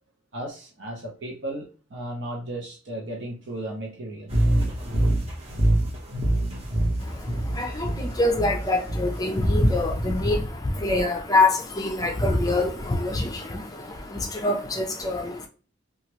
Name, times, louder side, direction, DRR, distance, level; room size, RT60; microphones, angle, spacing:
voice 1, 0.3-4.4, right 1 dB, 70° right, 0.8 m, -35 dB
sound 1, 4.3-10.3, right 1 dB, 35° right, 1.1 m, -25 dB
voice 2, 7.0-15.5, left 2 dB, 20° left, 0.5 m, -25 dB
3.0 x 2.4 x 2.9 m
head